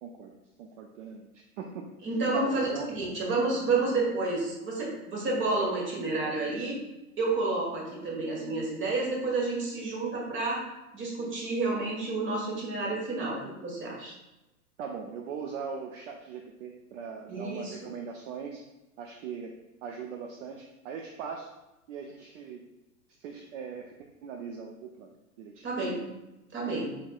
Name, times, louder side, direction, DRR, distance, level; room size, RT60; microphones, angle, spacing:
voice 1, 0.0-1.9 2.3-2.9 14.8-18.6 19.0-19.5 19.8-21.5 21.9-22.7 23.1-23.9 24.2-25.1 25.4-25.7, right 6 dB, 55° right, 3 dB, 0.6 m, -40 dB
voice 2, 2.0-6.8 7.1-10.6 10.9-14.1 17.3-17.8 25.6-26.0 26.5-26.9, right 3 dB, 25° right, -3 dB, 1.5 m, -30 dB
4.6 x 4.3 x 2.4 m, 0.99 s
hypercardioid pair, 105°, 45 cm